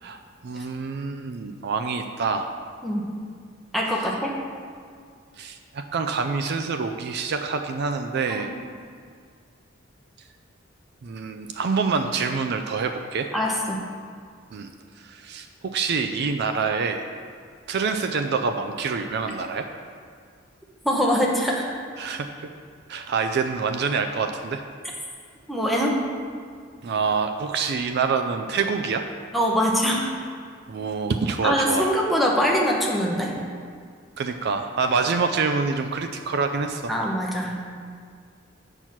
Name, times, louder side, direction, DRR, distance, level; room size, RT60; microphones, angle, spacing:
voice 1, 0.0-2.5 5.4-8.5 11.0-13.3 14.5-14.7 15.0-17.1 17.7-19.7 22.0-22.5 22.9-24.6 26.8-29.0 30.7-31.9 34.2-36.9, right 5 dB, 55° right, 6 dB, 0.4 m, -26 dB
voice 2, 3.7-4.3 8.3-8.5 13.3-13.8 20.8-21.7 25.5-25.9 29.3-30.1 31.4-33.3 36.9-37.6, equal, ahead, -2 dB, 0.9 m, -23 dB
8.0 x 4.5 x 5.8 m, 2.1 s
head